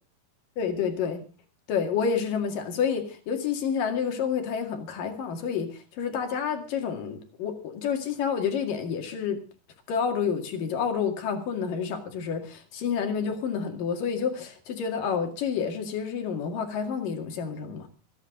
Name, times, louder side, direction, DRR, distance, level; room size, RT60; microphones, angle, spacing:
voice 1, 0.6-1.2 1.7-9.4 9.9-17.9, left 6 dB, 60° left, 5 dB, 3.6 m, -29 dB
25.5 x 9.9 x 3.8 m, 0.35 s
omnidirectional pair, 4.6 m